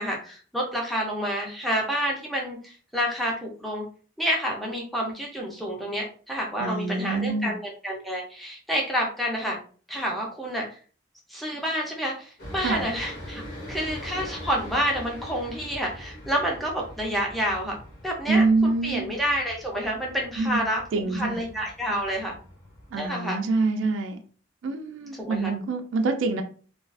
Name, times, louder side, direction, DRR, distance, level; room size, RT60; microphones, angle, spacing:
voice 1, 0.0-3.8 4.2-9.6 9.9-10.6 11.3-13.4 13.7-17.8 18.0-22.4 22.9-23.4 25.1-25.6, equal, ahead, -2 dB, 0.5 m, -29 dB
voice 2, 6.6-7.5 12.6-12.9 18.3-19.0 20.4-20.6 20.9-21.4 22.9-24.2 24.6-26.4, right 3 dB, 70° right, 6 dB, 0.3 m, -25 dB
sound 1, 12.4-23.1, equal, 45° left, 1.0 m, -42 dB
2.3 x 2.3 x 2.4 m, 0.41 s
head